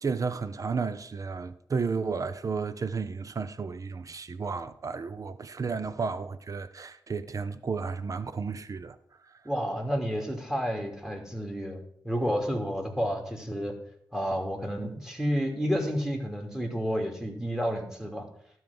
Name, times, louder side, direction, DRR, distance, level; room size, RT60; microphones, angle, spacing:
voice 1, 0.0-9.0, right 5 dB, 50° right, 0.8 m, -32 dB
voice 2, 9.4-13.7 14.1-18.3, equal, 5° right, 2.8 m, -30 dB
12.0 x 4.8 x 7.0 m
supercardioid pair, 50°, 8 cm